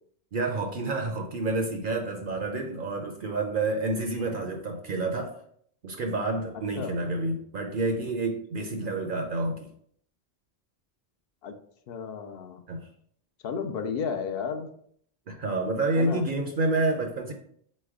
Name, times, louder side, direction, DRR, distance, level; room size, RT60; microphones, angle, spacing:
voice 1, 0.3-5.4 5.8-9.7 12.7-12.9 15.3-17.3, right 2 dB, 60° right, 3 dB, 0.7 m, -29 dB
voice 2, 11.9-12.6 13.4-14.7 16.0-16.2, left 6 dB, 65° left, 6 dB, 0.7 m, -33 dB
4.1 x 3.2 x 3.5 m, 0.65 s
omnidirectional pair, 1.1 m